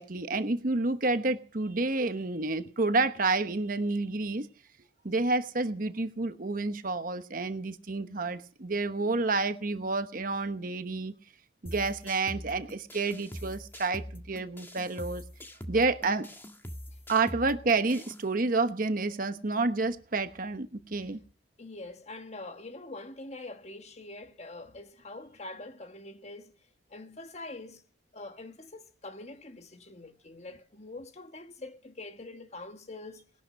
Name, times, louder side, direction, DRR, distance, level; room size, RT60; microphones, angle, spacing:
voice 1, 0.0-4.5 5.0-11.1 11.6-15.2 15.7-16.3 17.1-21.2, right 3 dB, 50° right, 1.0 m, -29 dB
sound 1, 11.7-18.2, equal, 10° left, 1.6 m, -43 dB
voice 2, 21.6-26.5 26.9-27.8 28.1-33.3, left 2 dB, 35° left, 1.4 m, -44 dB
19.5 x 11.5 x 6.4 m
head